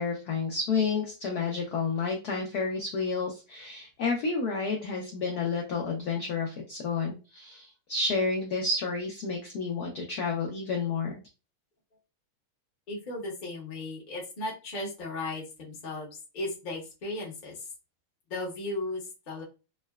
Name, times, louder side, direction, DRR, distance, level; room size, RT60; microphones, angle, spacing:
voice 1, 0.0-11.2, left 4 dB, 75° left, 0 dB, 0.8 m, -30 dB
voice 2, 12.9-16.1 16.3-17.5 18.3-19.4, left 2 dB, 45° left, -3 dB, 0.6 m, -36 dB
3.9 x 2.1 x 2.2 m, 0.30 s
omnidirectional pair, 2.4 m